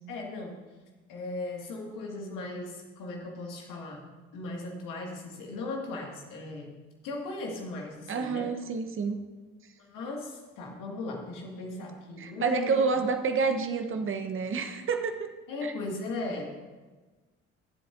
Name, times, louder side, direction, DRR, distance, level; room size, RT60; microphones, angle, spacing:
voice 1, 0.1-0.6 1.1-4.1 4.3-6.7 7.0-8.5 9.8-12.8 15.5-16.6, left 2 dB, 60° left, 1 dB, 2.2 m, -37 dB
voice 2, 8.1-9.2 12.2-15.3, right 5 dB, 35° right, 6 dB, 1.1 m, -28 dB
22.5 x 7.7 x 2.7 m, 1.3 s
figure-of-eight pair, 50°, 37 cm